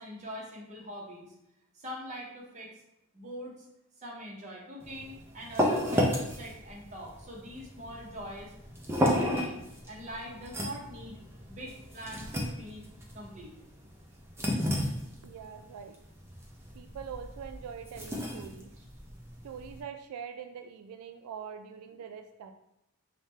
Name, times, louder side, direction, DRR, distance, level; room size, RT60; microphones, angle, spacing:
voice 1, 0.0-1.3 1.7-2.7 3.1-3.7 4.0-8.5 9.0-9.6 9.9-11.2 11.5-12.8 13.1-13.5 18.7-18.8, equal, 30° right, -3 dB, 0.8 m, -43 dB
sound 1, 4.8-19.8, equal, 10° right, 0.4 m, -33 dB
voice 2, 15.2-16.0 16.7-18.7 19.4-22.5, right 7 dB, 90° right, 11 dB, 0.3 m, -43 dB
4.9 x 2.1 x 3.1 m, 0.83 s
head